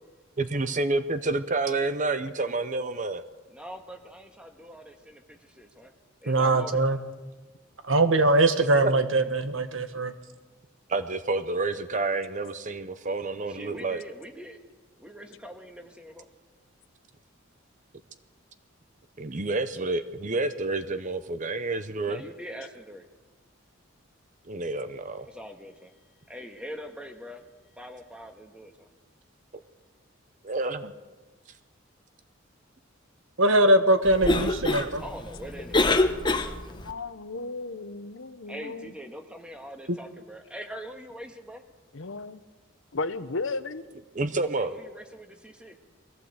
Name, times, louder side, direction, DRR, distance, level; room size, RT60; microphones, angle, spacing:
voice 1, 0.4-3.2 8.8-8.9 10.9-14.0 19.2-22.2 24.5-25.3 30.4-30.9 44.1-44.7, right 3 dB, 40° right, 11 dB, 0.8 m, -29 dB
voice 2, 3.6-5.9 6.2-6.8 13.5-14.6 15.0-16.2 22.0-23.0 25.3-25.9 26.3-27.4 27.8-28.9 35.0-36.2 38.5-41.6 44.6-45.8, equal, 5° right, 4 dB, 1.7 m, -43 dB
voice 3, 6.3-7.0 7.9-10.1 33.4-35.0 39.9-40.0, right 2 dB, 70° right, 9 dB, 1.5 m, -22 dB
Cough, 34.0-36.9, left 2 dB, 20° left, 1.0 m, -26 dB
voice 4, 36.5-38.9 41.9-42.4 42.9-43.8, left 3 dB, 70° left, 12 dB, 0.9 m, -35 dB
21.0 x 15.5 x 8.1 m, 1.2 s
head